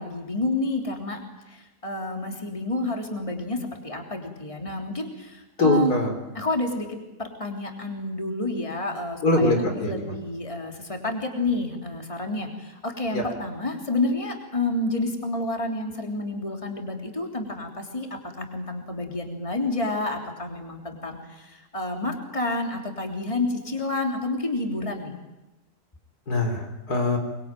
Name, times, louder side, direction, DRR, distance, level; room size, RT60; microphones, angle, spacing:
voice 1, 0.0-6.0 6.3-18.1 18.4-25.1, left 2 dB, 20° left, 2 dB, 3.2 m, -29 dB
voice 2, 5.6-6.1 9.2-10.2 13.1-13.3 26.3-27.2, left 2 dB, 85° left, 4 dB, 4.5 m, -23 dB
24.5 x 22.0 x 9.0 m, 1.0 s
omnidirectional pair, 1.6 m